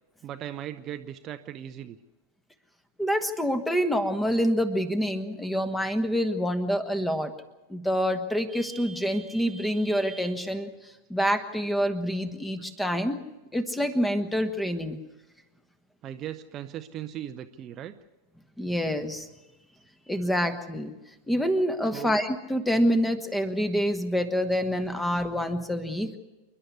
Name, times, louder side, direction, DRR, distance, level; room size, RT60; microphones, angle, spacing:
voice 1, 0.2-2.0 16.0-17.9 21.9-22.2, right 11 dB, 30° right, 8 dB, 0.8 m, -38 dB
voice 2, 3.0-7.3 7.7-10.7 11.1-13.2 13.5-15.0 18.6-19.3 20.1-20.9 21.3-26.1, equal, 5° left, 10 dB, 1.5 m, -26 dB
28.5 x 11.5 x 8.3 m, 1.1 s
figure-of-eight pair, 90°, 0 cm